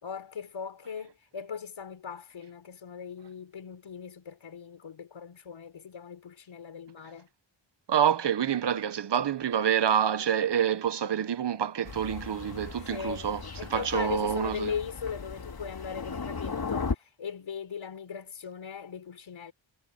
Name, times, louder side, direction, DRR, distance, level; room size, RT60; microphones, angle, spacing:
voice 1, 0.0-7.3 12.9-13.3 13.6-19.5, left 7 dB, 80° left, 4.7 m, -39 dB
voice 2, 7.9-13.4 13.7-14.7, right 9 dB, 60° right, 1.2 m, -27 dB
Thunder, 11.8-16.9, left 5 dB, 50° left, 3.1 m, -37 dB
cardioid pair, 70°, 46 cm